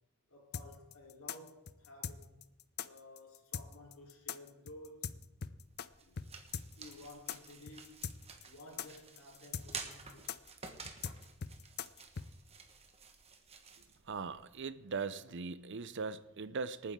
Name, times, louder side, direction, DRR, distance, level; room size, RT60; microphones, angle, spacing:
voice 1, 0.3-2.5 2.8-5.1 6.0-6.1 6.8-8.1 8.4-10.3, left 1 dB, 80° left, 3.8 m, -54 dB
sound 1, 0.5-5.9 6.2-6.3 6.5-12.3, left 7 dB, 50° left, 0.5 m, -41 dB
sound 2, 5.6-14.6, right 5 dB, 30° right, 1.4 m, -51 dB
voice 2, 14.0-16.9, right 4 dB, 55° right, 0.6 m, -40 dB
25.5 x 9.5 x 3.7 m
head